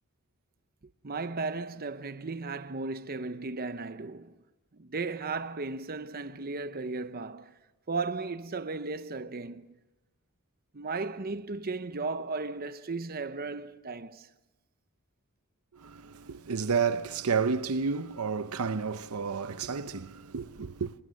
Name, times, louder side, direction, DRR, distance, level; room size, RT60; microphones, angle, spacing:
voice 1, 1.0-4.4 4.7-7.6 7.9-9.8 10.7-14.3, right 3 dB, 45° right, 0.8 m, -35 dB
voice 2, 15.7-20.9, right 5 dB, 80° right, 0.8 m, -31 dB
28.5 x 25.5 x 6.4 m
head